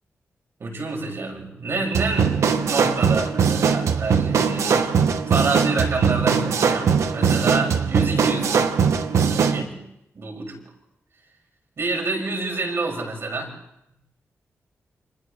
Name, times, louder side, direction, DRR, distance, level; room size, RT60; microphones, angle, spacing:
voice 1, 0.6-2.3 2.6-8.5 9.0-9.8 10.1-10.6 11.8-13.5, right 3 dB, 60° right, 0 dB, 6.2 m, -28 dB
sound 1, 1.9-9.6, right 6 dB, 90° right, 1.2 m, -20 dB
30.0 x 26.5 x 3.3 m, 0.81 s
wide cardioid pair, 110°, 5 cm